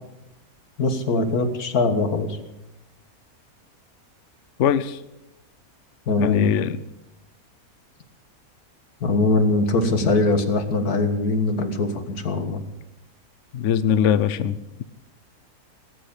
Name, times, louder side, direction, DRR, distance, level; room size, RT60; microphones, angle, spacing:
voice 1, 0.8-2.4 6.1-6.5 9.0-12.6, left 2 dB, 85° left, 7 dB, 2.1 m, -22 dB
voice 2, 4.6-5.0 6.2-6.8 13.5-14.8, left 9 dB, 60° left, 14 dB, 0.9 m, -21 dB
18.5 x 8.2 x 8.6 m, 0.91 s
omnidirectional pair, 1.6 m